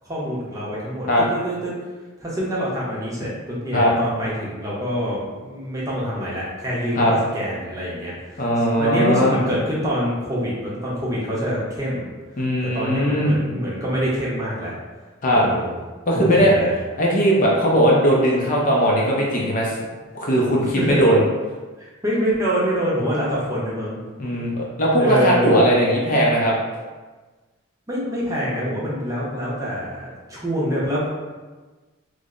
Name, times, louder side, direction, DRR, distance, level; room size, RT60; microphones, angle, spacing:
voice 1, 0.0-1.7 2.2-8.4 8.8-12.1 12.6-14.7 15.3-15.8 16.1-16.7 20.7-21.0 21.8-24.0 24.9-25.7 27.9-31.1, equal, 15° right, -6 dB, 0.7 m, -26 dB
voice 2, 8.4-9.4 12.4-13.4 15.2-15.4 16.1-16.5 17.0-19.7 20.2-21.2 24.2-26.5, equal, 40° left, -3 dB, 0.5 m, -18 dB
3.2 x 2.0 x 3.7 m, 1.3 s
head